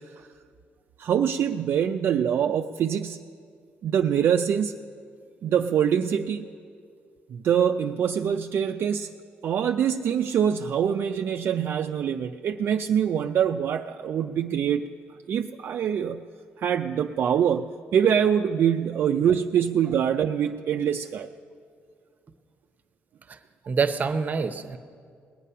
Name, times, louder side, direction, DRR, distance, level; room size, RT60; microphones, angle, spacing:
voice 1, 1.0-3.2 3.8-4.7 5.4-6.5 7.3-9.1 9.4-14.8 15.3-16.2 16.6-21.3, right 8 dB, 65° right, 5 dB, 0.4 m, -24 dB
voice 2, 23.7-24.8, right 5 dB, 40° right, 10 dB, 0.7 m, -26 dB
20.0 x 8.4 x 5.6 m, 2.2 s
cardioid pair, 105°, 4 cm